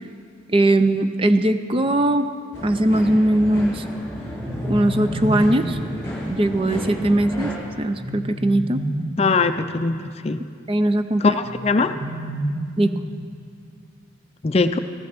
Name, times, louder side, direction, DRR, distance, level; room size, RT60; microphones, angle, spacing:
voice 1, 0.5-2.3 2.6-3.8 4.6-5.8 6.3-7.5 7.8-8.8 10.7-11.4 12.8-12.9, right 1 dB, 25° right, 9 dB, 0.5 m, -20 dB
sound 1, 2.5-7.5, equal, 15° left, 3.5 m, -31 dB
sound 2, 4.0-5.8 7.7-9.6 11.4-13.3, equal, 60° right, 4.0 m, -30 dB
voice 2, 9.2-10.4 11.2-11.9 14.4-14.8, left 3 dB, 30° left, 9 dB, 0.4 m, -21 dB
15.0 x 11.5 x 6.0 m, 2.2 s
head